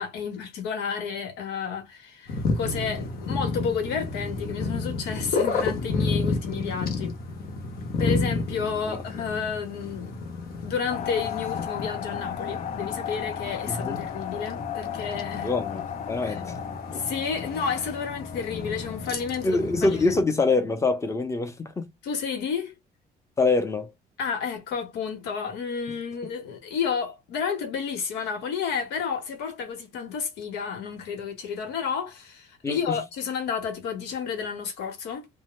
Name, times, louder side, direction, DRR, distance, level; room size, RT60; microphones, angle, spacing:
voice 1, 0.0-7.2 8.0-10.2 10.6-15.5 16.2-16.4 16.9-20.2 22.0-22.8 24.2-35.3, left 6 dB, 85° left, 1.1 m, -31 dB
sound 1, 2.3-20.2, left 3 dB, 65° left, 0.9 m, -32 dB
sound 2, 10.9-19.9, left 9 dB, 45° left, 0.4 m, -35 dB
voice 2, 13.7-14.0 15.4-16.6 19.4-21.9 23.4-23.9 32.6-33.0, left 3 dB, 15° left, 0.7 m, -25 dB
2.7 x 2.1 x 3.1 m
cardioid pair, 110°, 17 cm